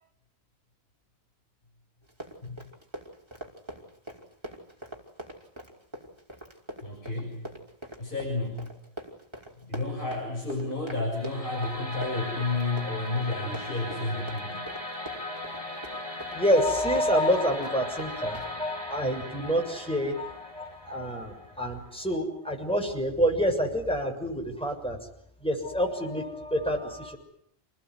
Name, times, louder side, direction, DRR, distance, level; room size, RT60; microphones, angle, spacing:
Run, 2.0-18.5, right 1 dB, 25° right, 5.7 m, -43 dB
voice 1, 6.8-7.5 8.0-8.7 9.6-14.7, left 2 dB, 55° left, 0 dB, 7.1 m, -31 dB
sound 1, 11.1-22.1, left 1 dB, 30° left, 4.1 m, -38 dB
voice 2, 16.3-25.0 25.4-27.2, equal, 5° left, 2 dB, 7.0 m, -27 dB
29.0 x 20.5 x 9.8 m, 0.67 s
omnidirectional pair, 1.1 m